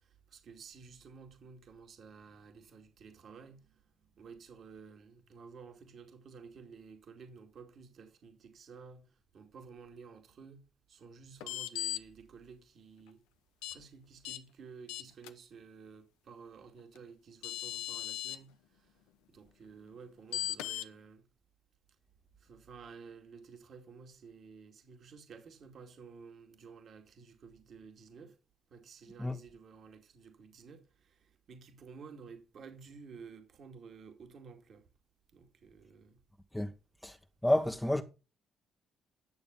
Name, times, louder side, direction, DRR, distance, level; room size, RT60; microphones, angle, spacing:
voice 1, 0.0-13.2 13.7-19.0 19.3-21.2 22.4-28.4 28.7-34.9 35.3-36.2, right 5 dB, 60° right, 2.4 m, -53 dB
sound 1, 11.4-12.0 13.6-13.8 14.2-14.4 14.9-15.3 17.0-17.1 17.4-18.4 20.3-20.9, left 14 dB, 90° left, 0.8 m, -37 dB
voice 2, 37.4-38.0, left 1 dB, 5° left, 1.2 m, -29 dB
11.0 x 6.8 x 5.3 m
supercardioid pair, 60°, 0 cm